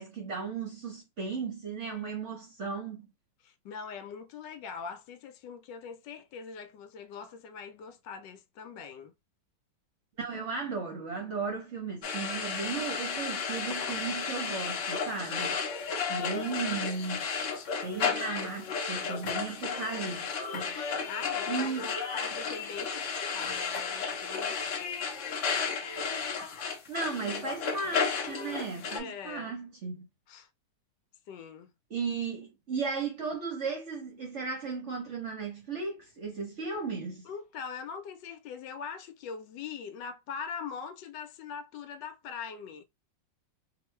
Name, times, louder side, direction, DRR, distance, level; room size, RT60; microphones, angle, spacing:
voice 1, 0.0-3.1 10.2-15.6 16.1-17.3 17.8-20.8 21.5-21.9 26.9-30.1 31.9-37.3, right 5 dB, 55° right, 0.8 m, -35 dB
voice 2, 3.4-9.1 16.2-16.9 21.0-24.6 29.0-29.5 30.3-30.5 31.3-31.7 37.2-42.8, left 6 dB, 80° left, 1.2 m, -42 dB
sound 1, 12.0-29.0, left 5 dB, 60° left, 0.8 m, -33 dB
3.0 x 2.4 x 3.1 m
omnidirectional pair, 2.0 m